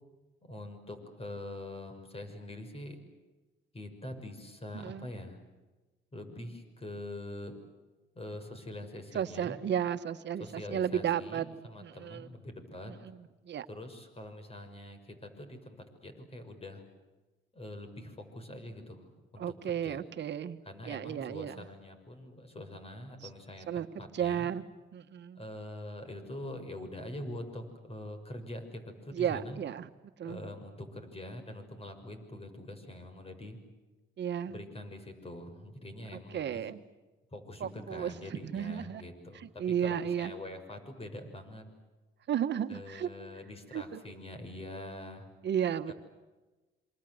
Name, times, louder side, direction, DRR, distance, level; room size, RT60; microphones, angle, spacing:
voice 1, 0.4-3.0 3.7-5.4 6.1-7.6 8.1-9.6 10.4-12.9 13.7-16.9 17.5-20.0 20.6-24.5 25.4-29.6 30.2-33.6 34.5-36.7 37.3-41.7 42.7-45.3 45.9-46.0, left 1 dB, 30° left, 7 dB, 6.3 m, -44 dB
voice 2, 4.7-5.1 9.1-11.5 11.8-12.3 13.4-13.7 19.4-20.6 20.9-21.6 23.7-24.6 24.9-25.4 29.1-29.8 30.2-30.4 34.2-34.6 36.3-36.8 37.6-39.0 39.6-40.3 42.3-43.1 43.7-44.0 45.4-45.9, right 9 dB, 60° right, 10 dB, 1.6 m, -33 dB
27.5 x 26.0 x 8.0 m, 1.2 s
cardioid pair, 90°, 20 cm